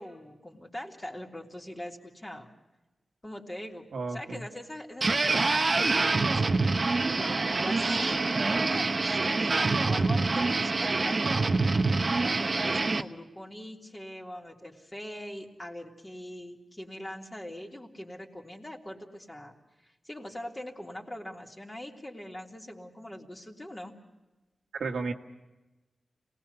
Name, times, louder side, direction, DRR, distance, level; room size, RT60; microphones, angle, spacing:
voice 1, 0.0-2.5 3.2-6.6 7.2-11.2 12.2-19.5 19.8-23.9, left 1 dB, 20° left, 0 dB, 3.2 m, -42 dB
voice 2, 3.9-4.4 24.8-25.1, right 4 dB, 90° right, 3 dB, 1.7 m, -33 dB
sound 1, 5.0-13.0, right 3 dB, 45° right, 1.0 m, -26 dB
28.0 x 19.0 x 6.9 m, 1.1 s
wide cardioid pair, 80°, 0 cm